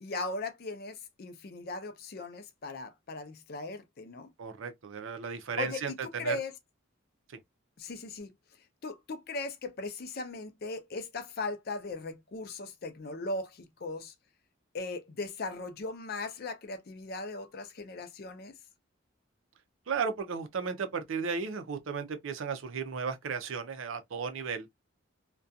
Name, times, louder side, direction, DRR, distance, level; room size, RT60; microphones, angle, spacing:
voice 1, 0.0-4.3 5.6-5.8 6.2-6.5 7.8-8.3 8.8-14.1 14.7-18.5, left 2 dB, 50° left, 0.5 m, -38 dB
voice 2, 4.4-6.4 19.9-24.7, right 5 dB, 75° right, 0.5 m, -34 dB
2.3 x 2.2 x 2.6 m
head